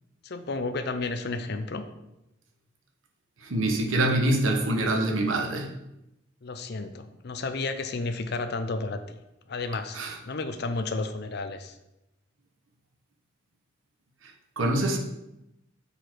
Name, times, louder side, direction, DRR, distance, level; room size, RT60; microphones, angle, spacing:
voice 1, 0.2-1.8 6.4-9.2 9.5-10.0 10.2-11.7, left 3 dB, 55° left, 8 dB, 0.5 m, -32 dB
voice 2, 3.4-5.7 9.9-10.2 14.6-15.0, right 1 dB, 80° right, 3 dB, 1.1 m, -25 dB
6.8 x 4.4 x 4.5 m, 0.89 s
head